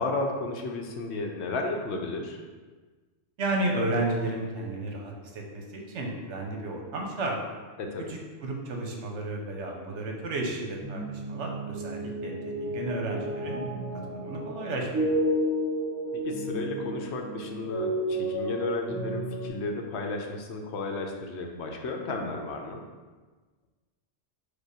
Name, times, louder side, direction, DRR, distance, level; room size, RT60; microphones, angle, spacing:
voice 1, 0.0-2.4 7.8-8.1 16.1-22.8, left 3 dB, 75° left, 3 dB, 0.8 m, -33 dB
voice 2, 3.4-7.3 8.1-12.3 12.6-13.6 14.1-15.2, right 2 dB, 75° right, 0 dB, 1.1 m, -32 dB
sound 1, 10.8-19.5, right 1 dB, 25° right, 0.4 m, -31 dB
5.0 x 2.2 x 4.7 m, 1.3 s
omnidirectional pair, 1.2 m